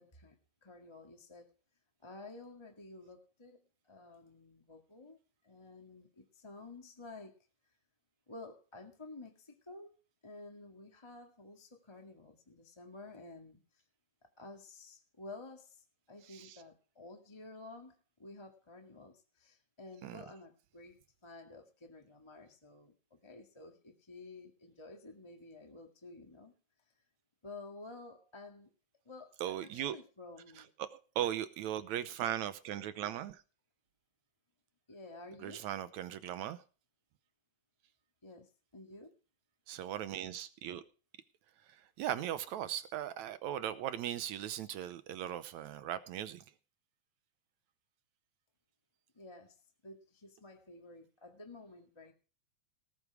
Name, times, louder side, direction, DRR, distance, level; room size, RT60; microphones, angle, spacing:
voice 1, 0.0-1.5 2.0-5.2 5.4-7.3 8.3-9.9 10.2-13.8 14.4-26.5 27.4-28.7 29.0-30.7 34.9-35.6 38.2-39.1 49.1-52.1, left 2 dB, 10° left, 1.3 m, -52 dB
voice 2, 16.3-16.6 20.0-20.2 29.4-30.0 30.8-33.4 35.4-36.6 39.7-40.8 41.7-46.4, right 11 dB, 75° right, 1.9 m, -38 dB
18.5 x 8.4 x 4.8 m
omnidirectional pair, 3.8 m